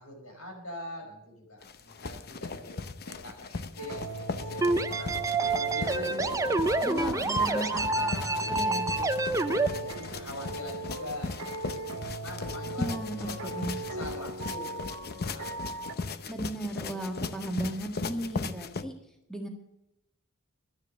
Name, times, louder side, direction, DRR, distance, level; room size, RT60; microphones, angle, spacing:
voice 1, 0.0-2.8 3.0-5.2 5.5-9.2 9.5-14.9 15.3-15.5 15.8-16.0, left 1 dB, 75° left, 2 dB, 5.3 m, -43 dB
sound 1, 1.6-18.8, left 3 dB, 45° left, 0.7 m, -38 dB
sound 2, 3.8-16.0, right 2 dB, 75° right, 1.7 m, -39 dB
sound 3, 4.6-9.7, right 3 dB, 15° right, 0.5 m, -28 dB
voice 2, 6.8-7.8 8.5-8.9 12.8-13.7 16.3-18.9 19.3-19.5, right 1 dB, 5° left, 2 dB, 1.6 m, -35 dB
12.5 x 10.5 x 6.4 m, 0.90 s
head